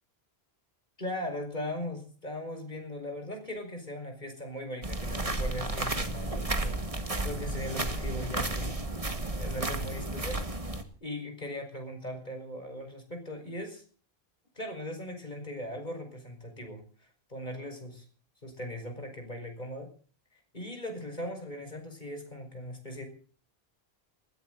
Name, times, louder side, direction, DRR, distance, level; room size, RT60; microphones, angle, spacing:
voice 1, 1.0-8.8 9.4-10.4 11.0-13.8 14.6-18.0 18.4-19.9 20.3-23.0, left 1 dB, 45° left, 5 dB, 5.3 m, -39 dB
sound 1, 4.8-10.8, right 2 dB, 35° right, 1.9 m, -32 dB
20.5 x 14.0 x 3.9 m, 0.42 s
omnidirectional pair, 1.0 m